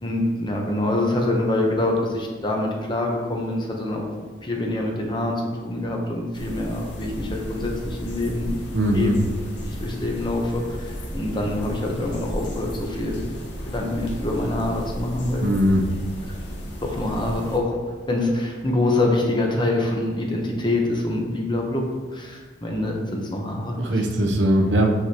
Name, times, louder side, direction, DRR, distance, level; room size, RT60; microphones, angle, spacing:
voice 1, 0.0-4.1 4.4-8.6 8.9-9.1 9.6-13.2 13.7-15.5 16.8-17.7 18.1-21.8 22.1-24.0, left 1 dB, 25° left, 0 dB, 0.9 m, -25 dB
sound 1, 6.3-17.6, equal, 70° left, 1.0 m, -34 dB
voice 2, 8.7-9.2 15.4-15.8 23.8-24.9, equal, 70° right, 2 dB, 0.8 m, -20 dB
6.3 x 5.7 x 2.9 m, 1.5 s
head